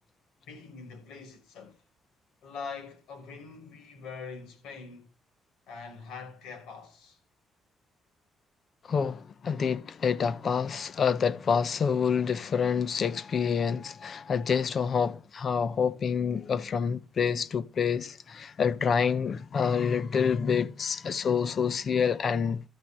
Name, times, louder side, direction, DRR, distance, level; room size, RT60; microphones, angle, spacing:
voice 1, 0.5-1.8 2.4-5.1 5.7-7.2, left 5 dB, 80° left, 5.7 m, -43 dB
voice 2, 8.8-22.6, left 6 dB, 50° left, 0.9 m, -27 dB
13.0 x 6.1 x 8.0 m
cardioid pair, 90°, 0 cm